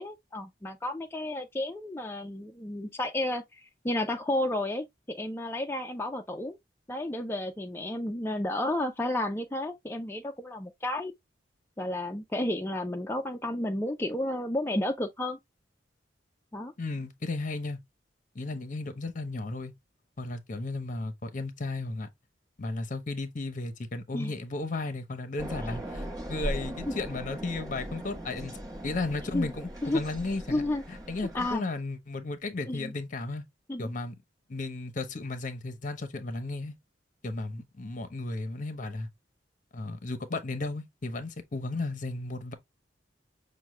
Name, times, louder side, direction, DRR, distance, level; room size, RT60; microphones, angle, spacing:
voice 1, 0.0-6.6 6.9-11.1 11.8-15.4 16.5-16.7 24.1-24.3 25.6-25.7 26.9-27.0 29.3-29.5 29.8-30.0 30.5-30.8 31.3-31.7 32.7-32.9 33.7-33.9, left 1 dB, 15° left, 0.4 m, -32 dB
voice 2, 16.8-17.8 18.3-19.7 20.2-22.1 22.6-28.6 28.8-30.6 30.9-33.4 33.8-34.1 34.5-36.7 37.2-39.1 39.7-42.5, left 2 dB, 45° left, 0.8 m, -34 dB
sound 1, 25.4-31.6, equal, 20° right, 1.1 m, -39 dB
6.0 x 2.2 x 3.0 m
head